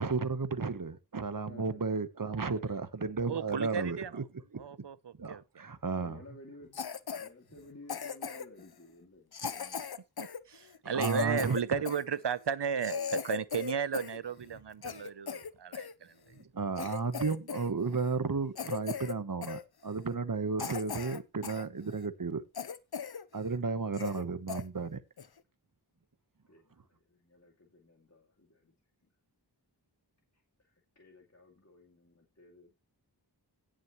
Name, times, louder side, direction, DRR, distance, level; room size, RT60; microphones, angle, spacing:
voice 1, 0.0-4.2 4.5-4.6 5.2-6.2 10.8-11.8 16.5-22.4 23.3-25.0, right 4 dB, 50° right, 1.1 m, -33 dB
voice 2, 1.4-1.9 2.5-2.7 3.0-3.4 6.0-6.8 7.1-9.9 23.6-23.8 26.5-28.7 30.3-32.7, left 2 dB, 40° left, 2.5 m, -55 dB
voice 3, 3.3-4.2 4.5-5.6 10.2-16.3, right 7 dB, 75° right, 0.8 m, -35 dB
Cough, 6.7-7.3 7.9-8.6 9.3-12.0 12.5-12.6 12.8-14.2 14.5-15.9 16.4-16.5 16.8-17.7 17.9-18.2 18.5-19.2 19.4-19.6 20.1-20.2 20.6-21.6 22.0-22.1 22.5-23.2 23.5-23.6 23.9-24.2 24.5-24.6 25.2-25.4, left 7 dB, 60° left, 0.8 m, -38 dB
17.0 x 6.4 x 3.1 m
wide cardioid pair, 55°, 42 cm